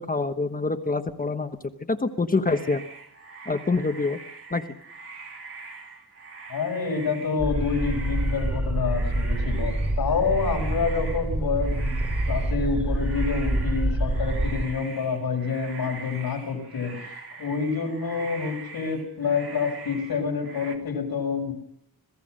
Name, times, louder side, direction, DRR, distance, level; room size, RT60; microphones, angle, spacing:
voice 1, 0.0-1.5 1.9-2.8 3.5-4.2 4.5-4.6, left 3 dB, 20° left, 7 dB, 1.1 m, -25 dB
sound 1, 2.5-11.3 11.6-20.8, right 4 dB, 35° right, 2.5 m, -43 dB
voice 2, 6.5-12.0 12.3-21.5, left 5 dB, 65° left, 2 dB, 6.1 m, -28 dB
sound 2, 7.4-14.7, right 1 dB, 5° right, 2.4 m, -26 dB
26.0 x 17.0 x 6.5 m, 0.76 s
wide cardioid pair, 175°, 39 cm